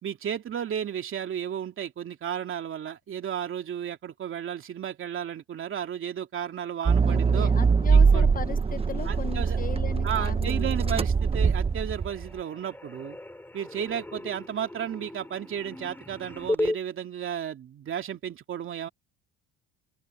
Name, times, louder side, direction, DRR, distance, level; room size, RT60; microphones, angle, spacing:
voice 1, 0.0-7.5 7.9-8.2 9.1-9.6 10.0-13.2 13.5-18.9, right 9 dB, 40° right, 2.8 m, -33 dB
Accelerating revving vroom, 6.9-12.3, right 5 dB, 20° right, 0.8 m, -23 dB
voice 2, 7.0-11.0, left 7 dB, 30° left, 0.9 m, -38 dB
sound 1, 11.1-11.3 11.6-16.8, left 1 dB, 5° left, 5.2 m, -35 dB
open air
cardioid pair, 120°, 30 cm